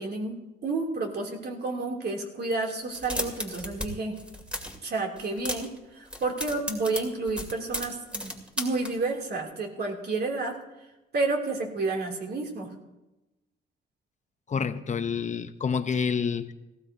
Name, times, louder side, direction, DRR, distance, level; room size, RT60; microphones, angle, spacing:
voice 1, 0.0-4.2 4.8-10.6 11.1-12.7, right 3 dB, 55° right, 2.8 m, -30 dB
sound 1, 2.9-3.9 4.1-4.8 5.2-5.8 6.1-8.9, equal, 5° right, 2.4 m, -34 dB
voice 2, 14.5-16.5, left 6 dB, 35° left, 0.7 m, -28 dB
18.0 x 15.5 x 2.7 m
cardioid pair, 90°, 20 cm